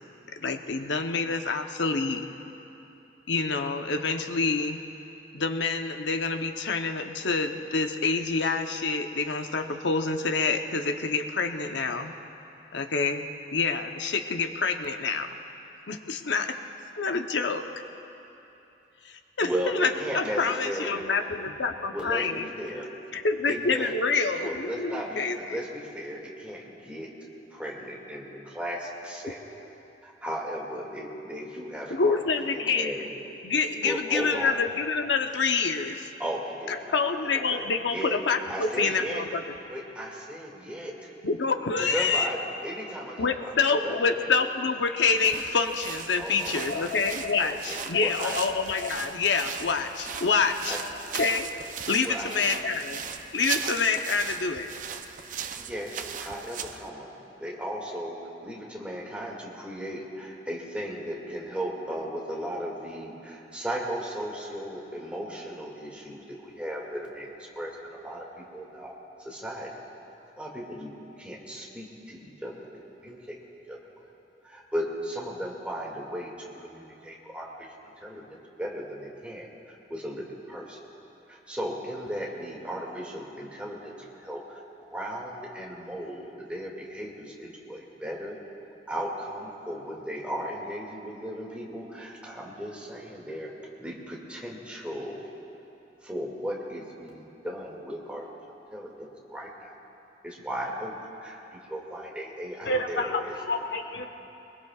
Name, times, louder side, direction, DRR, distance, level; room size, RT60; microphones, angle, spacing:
voice 1, 0.3-2.3 3.3-4.8 5.3-12.1 12.7-15.3 15.9-16.6 17.0-17.7 19.0-22.5 23.1-25.6 31.9-33.0 33.4-36.1 36.7-39.5 41.2-42.3 43.2-50.8 51.1-51.5 51.9-53.0 53.3-54.7, left 4 dB, 90° left, 6 dB, 0.8 m, -27 dB
voice 2, 19.4-21.0 21.9-22.9 23.5-23.9 24.4-27.1 27.5-29.4 30.0-33.1 33.8-34.6 36.2-38.2 38.5-39.2 39.7-41.1 41.7-43.5 43.8-44.3 46.2-46.9 47.4-48.4 50.7-50.8 52.0-52.5 55.6-57.1 57.4-68.9 69.2-69.7 70.4-72.7 73.0-73.4 73.7-73.8 74.4-77.7 78.0-80.8 81.3-88.4 88.9-93.5 93.8-95.2 96.0-98.3 98.7-99.7 100.2-100.9 101.2-103.1, equal, 5° right, -3 dB, 2.2 m, -36 dB
sound 1, 45.0-56.9, right 7 dB, 45° right, 0.5 m, -38 dB
voice 3, 102.6-104.1, left 1 dB, 70° left, 4 dB, 1.2 m, -29 dB
23.0 x 21.5 x 2.4 m, 2.9 s
head